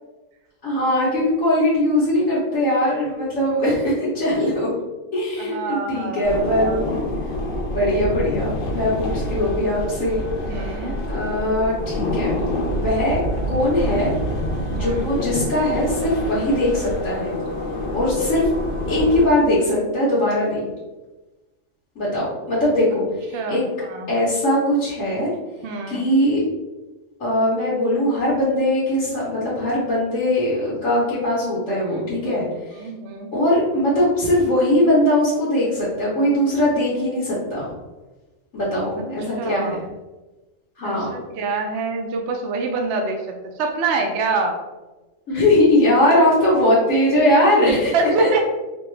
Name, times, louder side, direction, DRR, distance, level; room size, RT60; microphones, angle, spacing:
voice 1, 0.6-4.7 5.1-6.8 7.7-10.2 10.6-12.4 12.7-13.2 13.5-14.1 14.7-17.3 17.9-18.5 18.9-20.6 22.0-23.6 24.1-25.3 25.9-26.4 27.2-32.8 33.3-37.6 38.5-39.8 40.8-41.1 45.3-48.3, left 1 dB, 90° left, -8 dB, 1.4 m, -20 dB
voice 2, 5.4-6.8 10.5-11.0 14.8-15.0 23.3-23.6 23.9-24.1 25.6-26.1 31.9-32.4 32.8-33.3 39.4-39.8 40.8-43.2 43.6-44.6 47.9-48.5, right 3 dB, 65° right, 2 dB, 0.8 m, -25 dB
sound 1, 6.2-19.3, left 1 dB, 50° left, 0.7 m, -27 dB
4.3 x 2.3 x 3.2 m, 1.1 s
omnidirectional pair, 1.3 m